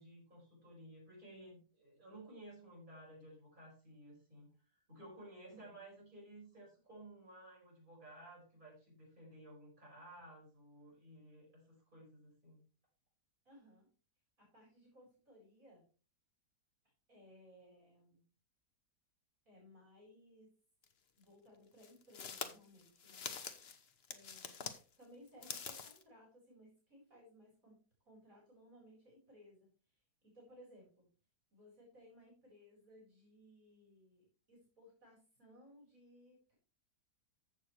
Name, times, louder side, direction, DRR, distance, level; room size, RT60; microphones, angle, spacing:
voice 1, 0.0-12.6, right 1 dB, 30° right, -4 dB, 5.7 m, -56 dB
voice 2, 5.5-5.9 13.5-13.9 14.4-15.8 17.1-18.2 19.5-20.5 21.2-23.3 24.1-24.7 25.0-31.1 31.5-36.5, equal, 50° right, -3 dB, 5.1 m, -62 dB
sound 1, 20.8-20.9 21.8-24.8 25.3-26.0, left 6 dB, 40° left, 1.1 m, -45 dB
14.5 x 6.8 x 3.3 m, 0.37 s
omnidirectional pair, 1.8 m